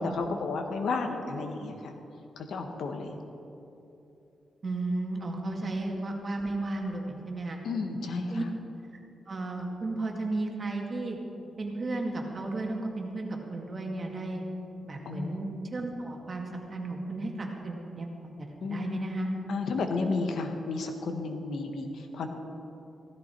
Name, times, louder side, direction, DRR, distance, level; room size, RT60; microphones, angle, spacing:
voice 1, 0.0-1.9 2.4-3.2 7.6-8.5 15.0-15.4 18.6-19.1 19.5-22.3, left 3 dB, 75° left, 5 dB, 1.4 m, -32 dB
voice 2, 4.6-7.6 8.3-8.4 9.3-11.2 11.6-14.4 14.8-18.1 18.4-19.3, right 2 dB, 35° right, 1 dB, 2.1 m, -34 dB
15.5 x 14.0 x 4.6 m, 2.8 s
cardioid pair, 115°, 0 cm